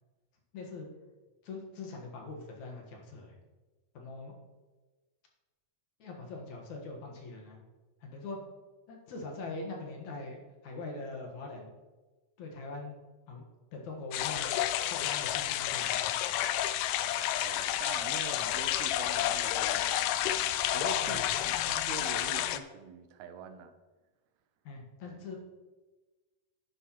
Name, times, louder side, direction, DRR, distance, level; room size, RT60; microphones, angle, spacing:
voice 1, 0.5-0.9 1.4-3.4 3.9-4.3 6.0-7.6 8.0-8.4 8.9-11.7 12.4-12.9 13.3-13.4 13.7-14.6 14.9-16.6 21.0-21.3 24.6-25.4, left 3 dB, 60° left, 0 dB, 2.7 m, -42 dB
sound 1, 14.1-22.6, left 13 dB, 80° left, 2.0 m, -30 dB
voice 2, 17.4-23.7 25.1-25.2, right 7 dB, 70° right, 7 dB, 1.9 m, -45 dB
10.5 x 10.0 x 3.1 m, 1.2 s
omnidirectional pair, 3.9 m